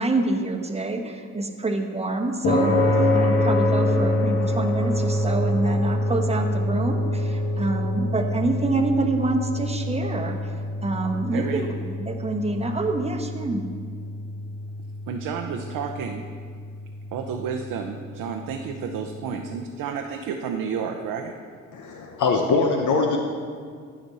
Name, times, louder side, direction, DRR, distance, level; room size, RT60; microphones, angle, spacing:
voice 1, 0.0-2.7 3.1-10.4 10.8-11.7 12.0-13.6, right 2 dB, 20° right, 3 dB, 1.1 m, -26 dB
sound 1, 2.4-19.0, left 1 dB, 90° left, 1.9 m, -26 dB
voice 2, 11.3-11.6 15.1-16.2 17.1-21.3, right 6 dB, 80° right, 3 dB, 0.7 m, -31 dB
voice 3, 21.7-23.2, left 4 dB, 65° left, 3 dB, 0.8 m, -22 dB
15.5 x 5.2 x 4.1 m, 2.1 s
cardioid pair, 80°, 33 cm